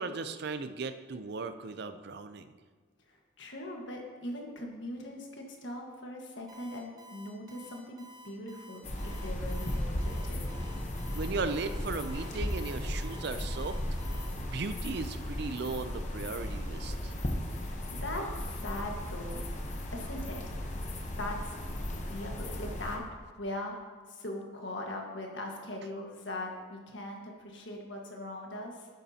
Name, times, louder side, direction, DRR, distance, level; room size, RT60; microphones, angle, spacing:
voice 1, 0.0-2.5 11.1-13.8 14.4-17.1, right 4 dB, 50° right, 10 dB, 0.5 m, -36 dB
voice 2, 3.1-10.5 17.4-19.4 19.9-20.5 21.2-21.5 21.9-23.0 23.3-23.7 24.1-28.9, left 1 dB, 60° left, 1 dB, 1.5 m, -40 dB
Alarm, 6.5-14.3, right 1 dB, 20° right, 1.1 m, -52 dB
sound 1, 8.8-23.0, left 1 dB, 35° left, 1.0 m, -36 dB
12.5 x 9.2 x 2.9 m, 1.5 s
head